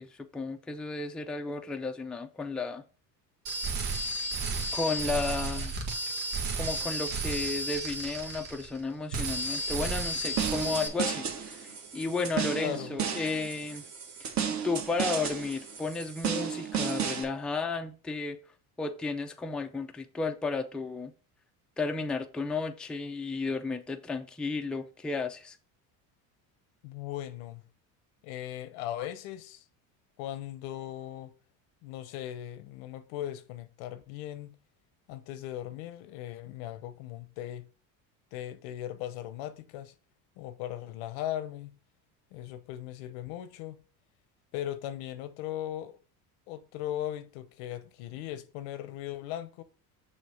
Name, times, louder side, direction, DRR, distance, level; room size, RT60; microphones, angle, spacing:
voice 1, 0.0-2.8 4.7-5.8 6.5-13.9 14.6-18.4 18.8-21.1 21.8-25.6, left 3 dB, ahead, 0.4 m, -33 dB
sound 1, 3.5-8.8 9.1-10.9, right 2 dB, 60° right, 1.6 m, -33 dB
sound 2, 9.2-17.2, right 8 dB, 45° right, 1.2 m, -34 dB
voice 2, 12.6-13.0 26.8-27.6 28.2-29.6 30.2-31.3 31.8-34.6 35.1-37.7 38.3-39.9 40.4-41.7 42.3-43.8 44.5-45.9 46.5-49.6, left 12 dB, 90° left, 0.8 m, -38 dB
6.6 x 2.8 x 5.7 m
cardioid pair, 115°, 40 cm